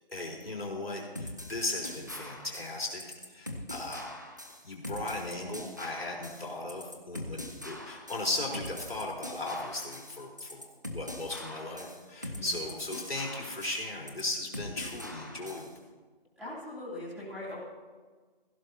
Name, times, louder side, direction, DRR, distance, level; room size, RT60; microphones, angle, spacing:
voice 1, 0.1-3.0 3.3-4.1 4.6-10.7 10.9-15.7, left 2 dB, 80° left, -2 dB, 4.1 m, -37 dB
sound 1, 1.2-15.7, left 1 dB, 20° right, 0.6 m, -42 dB
voice 2, 12.3-12.7 16.3-17.6, left 1 dB, ahead, -15 dB, 3.0 m, -41 dB
17.5 x 15.5 x 2.8 m, 1.4 s
figure-of-eight pair, 170°, 29 cm